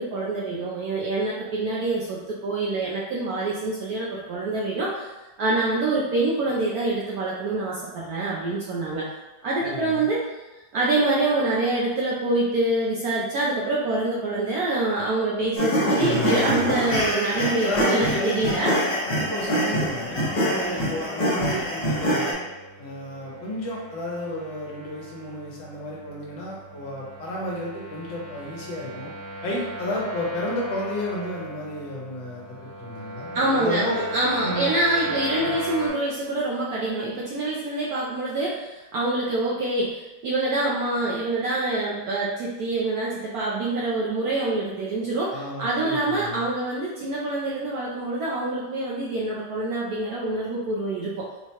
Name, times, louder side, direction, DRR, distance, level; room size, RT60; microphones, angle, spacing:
voice 1, 0.0-5.1 5.4-9.1 9.4-10.3 10.7-18.7 20.4-20.8 33.3-33.8 34.1-51.3, right 2 dB, 70° right, -5 dB, 0.9 m, -26 dB
voice 2, 9.6-10.1 17.6-18.2 18.7-18.8 19.1-20.2 20.7-22.4 22.8-29.1 29.4-34.0 34.4-35.5 45.3-46.5, left 1 dB, 80° left, -3 dB, 1.6 m, -32 dB
sound 1, 15.6-22.3, equal, 40° left, 0.5 m, -24 dB
sound 2, 17.3-35.9, equal, 40° right, 0.9 m, -38 dB
4.6 x 2.1 x 2.8 m, 1.1 s
omnidirectional pair, 2.1 m